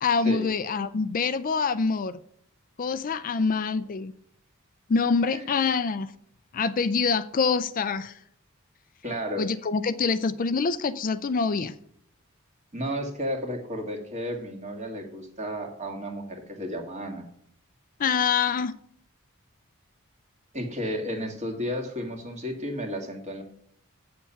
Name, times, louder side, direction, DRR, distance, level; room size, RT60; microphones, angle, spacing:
voice 1, 0.0-2.2 2.8-4.1 4.9-6.1 6.5-8.2 9.4-11.7 18.0-18.7, left 5 dB, 40° left, 13 dB, 0.4 m, -25 dB
voice 2, 9.0-9.4 12.7-17.3 20.5-23.4, equal, 35° right, 3 dB, 2.0 m, -33 dB
8.4 x 7.1 x 5.7 m, 0.67 s
head